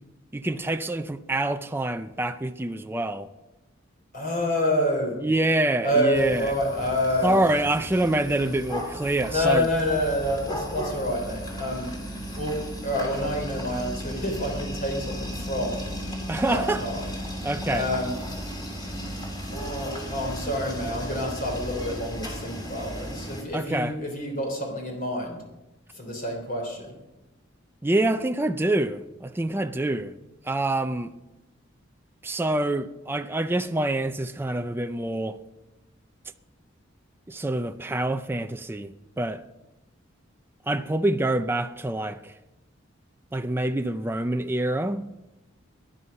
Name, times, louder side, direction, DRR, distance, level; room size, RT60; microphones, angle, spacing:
voice 1, 0.3-3.3 5.2-6.5 7.2-9.7 16.3-16.8 17.4-17.9 23.5-23.9 27.8-30.1 30.4-31.1 32.2-35.4 37.3-39.4 40.7-42.3 43.3-45.1, right 1 dB, 10° right, 0.4 m, -26 dB
voice 2, 4.1-5.2 5.8-7.4 9.3-11.9 12.4-15.8 16.5-17.1 17.7-18.2 19.5-25.4 25.9-26.9, left 1 dB, 45° left, 3.7 m, -28 dB
sound 1, 6.1-23.4, equal, 20° left, 3.4 m, -35 dB
18.5 x 11.5 x 5.4 m
head